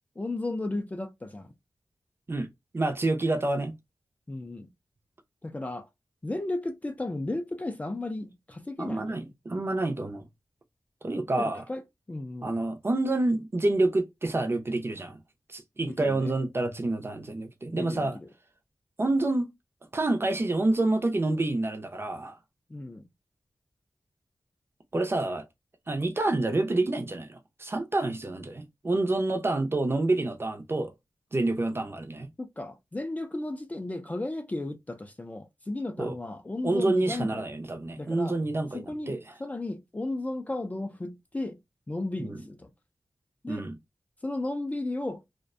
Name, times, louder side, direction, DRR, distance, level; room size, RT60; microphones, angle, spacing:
voice 1, 0.2-1.5 4.3-4.7 5.4-5.9 6.2-9.2 11.4-11.8 12.1-12.5 15.8-16.3 17.7-18.3 22.7-23.1 32.4-37.4 38.0-38.4 38.7-41.6 41.9-42.7 43.4-43.7 44.2-45.2, left 2 dB, 20° left, 0.4 m, -34 dB
voice 2, 2.7-3.8 8.8-10.3 11.0-11.6 12.4-15.2 15.5-18.2 19.0-19.5 19.9-22.4 24.9-25.4 25.9-30.9 31.3-32.3 36.0-36.2 36.6-39.2 42.2-42.4 43.5-43.8, right 2 dB, 35° right, 0.5 m, -28 dB
2.4 x 2.1 x 2.4 m
wide cardioid pair, 105°, 7 cm